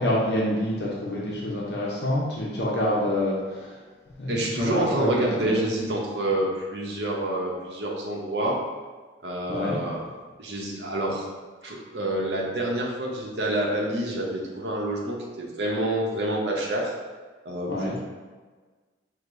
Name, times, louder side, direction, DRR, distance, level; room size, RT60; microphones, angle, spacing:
voice 1, 0.0-3.8 4.2-5.6 9.5-9.8 17.7-18.0, left 1 dB, 65° left, -5 dB, 0.7 m, -27 dB
voice 2, 4.3-8.6 9.2-10.0 10.4-11.3 11.6-16.9 17.4-18.0, right 1 dB, 70° right, -2 dB, 0.8 m, -27 dB
6.2 x 2.2 x 2.6 m, 1.4 s
head